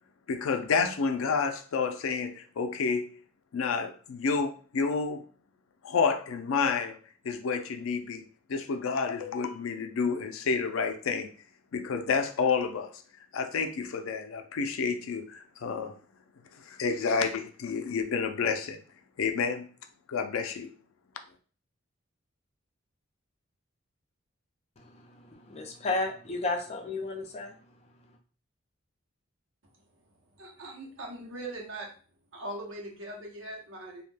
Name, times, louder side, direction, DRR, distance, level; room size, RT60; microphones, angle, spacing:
voice 1, 0.3-3.2 3.5-5.2 5.8-7.0 7.2-8.2 8.5-11.3 11.7-13.0 13.3-16.0 16.6-18.8 19.2-19.7 20.1-20.7, left 5 dB, 90° left, 7 dB, 0.4 m, -29 dB
voice 2, 24.8-27.6, left 3 dB, 30° left, 3 dB, 0.5 m, -33 dB
voice 3, 30.4-31.9 32.3-34.0, right 1 dB, 75° right, -1 dB, 0.8 m, -40 dB
2.3 x 2.1 x 3.2 m, 0.40 s
head